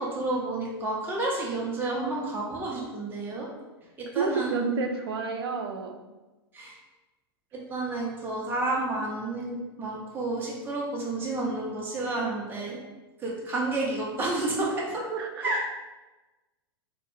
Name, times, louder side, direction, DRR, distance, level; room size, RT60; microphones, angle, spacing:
voice 1, 0.0-3.5 4.0-4.6 6.5-6.7 7.5-12.8 13.2-15.0 15.4-15.8, right 2 dB, 15° right, -4 dB, 0.5 m, -30 dB
voice 2, 4.1-6.0 15.1-15.5, right 4 dB, 65° right, 5 dB, 0.4 m, -30 dB
2.5 x 2.0 x 2.9 m, 1.1 s
hypercardioid pair, 100°, 14 cm